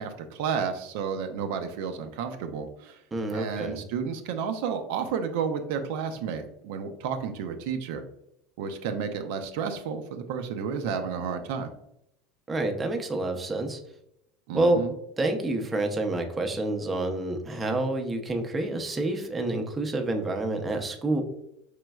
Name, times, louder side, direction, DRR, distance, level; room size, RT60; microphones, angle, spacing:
voice 1, 0.0-3.0 3.3-8.1 8.6-11.7 14.5-14.9, right 6 dB, 70° right, 6 dB, 0.5 m, -31 dB
voice 2, 3.1-3.8 12.5-13.8 14.5-14.8 15.2-21.2, right 2 dB, 15° right, 4 dB, 0.5 m, -28 dB
5.0 x 3.1 x 2.3 m, 0.79 s
supercardioid pair, 130°, 0 cm